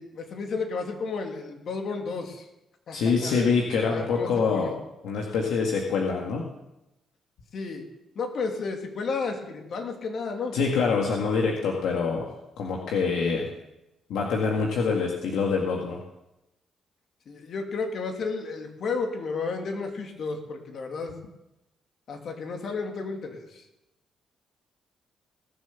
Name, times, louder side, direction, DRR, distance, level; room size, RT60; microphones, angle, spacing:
voice 1, 0.0-2.5 2.9-3.5 3.9-4.8 7.5-7.9 8.1-10.6 17.3-21.2 22.1-23.7, left 4 dB, 60° left, 3 dB, 2.7 m, -32 dB
voice 2, 2.9-4.7 5.0-6.5 10.5-12.3 12.6-13.5 14.1-16.0, left 5 dB, 80° left, 0 dB, 1.9 m, -25 dB
19.0 x 7.4 x 7.1 m, 0.92 s
cardioid pair, 70°, 0 cm